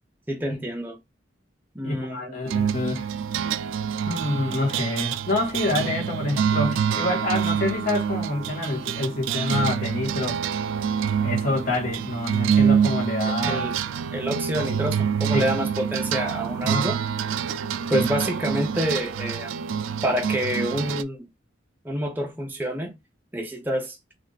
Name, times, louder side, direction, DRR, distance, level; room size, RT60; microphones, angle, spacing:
voice 1, 0.3-1.0 1.7-2.4 13.2-13.7 14.1-17.0 17.9-19.6 20.0-21.3 21.8-23.0 23.3-24.0, equal, 10° right, 0.5 m, -28 dB
voice 2, 1.8-3.1 4.1-10.4 11.2-13.6 15.3-15.5 16.6-16.9 17.9-18.1, left 2 dB, 45° left, 1.2 m, -27 dB
sound 1, 2.5-21.0, right 7 dB, 90° right, 0.3 m, -26 dB
2.5 x 2.4 x 3.8 m
head